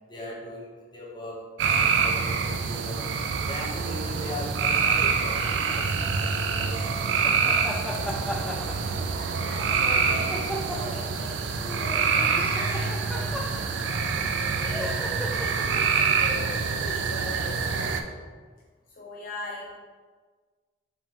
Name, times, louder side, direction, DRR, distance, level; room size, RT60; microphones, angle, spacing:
voice 1, 0.1-3.2 3.5-7.4, equal, 25° left, -4 dB, 0.9 m, -39 dB
sound 1, 1.6-18.0, right 5 dB, 75° right, 0.4 m, -26 dB
sound 2, 5.4-5.8 7.2-9.3 10.3-11.1 11.6-13.9 14.7-15.9 16.8-17.1, equal, ahead, 0.3 m, -36 dB
voice 2, 7.7-8.7 9.1-18.0 18.9-19.7, left 2 dB, 50° left, -3 dB, 0.5 m, -42 dB
sound 3, 9.4-10.2 10.9-11.0 12.1-13.3, equal, 15° right, 1.0 m, -41 dB
4.6 x 2.9 x 3.6 m, 1.4 s
head